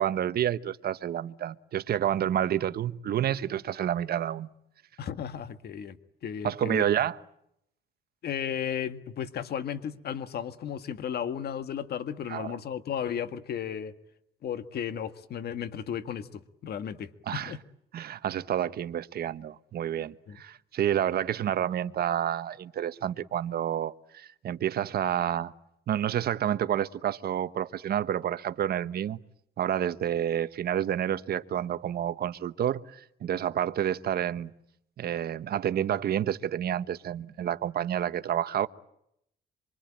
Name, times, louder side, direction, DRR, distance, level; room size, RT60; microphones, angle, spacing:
voice 1, 0.0-4.5 6.4-7.2 12.3-12.6 17.2-17.6 17.9-25.5 25.9-29.2 29.6-34.5 35.0-38.7, right 10 dB, 55° right, 1.2 m, -29 dB
voice 2, 5.0-6.0 6.2-6.8 8.2-13.9 14.4-17.6 20.3-20.4, left 8 dB, 55° left, 1.7 m, -34 dB
26.5 x 24.0 x 8.8 m
cardioid pair, 110°, 19 cm